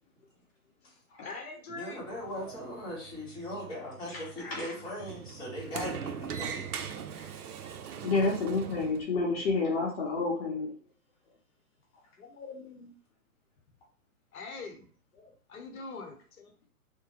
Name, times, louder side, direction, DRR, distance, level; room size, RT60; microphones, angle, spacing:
voice 1, 1.2-2.1 12.2-12.9 14.3-14.9 15.1-16.7, left 3 dB, 65° left, 2 dB, 0.9 m, -44 dB
voice 2, 1.7-6.7 7.1-7.8, left 1 dB, 10° left, -7 dB, 1.0 m, -39 dB
Sliding door, 2.0-9.0, right 8 dB, 75° right, 0.5 m, -41 dB
voice 3, 4.1-4.9 8.0-10.7, left 3 dB, 40° left, -3 dB, 0.8 m, -30 dB
2.9 x 2.2 x 2.9 m, 0.42 s
hypercardioid pair, 130°, 46 cm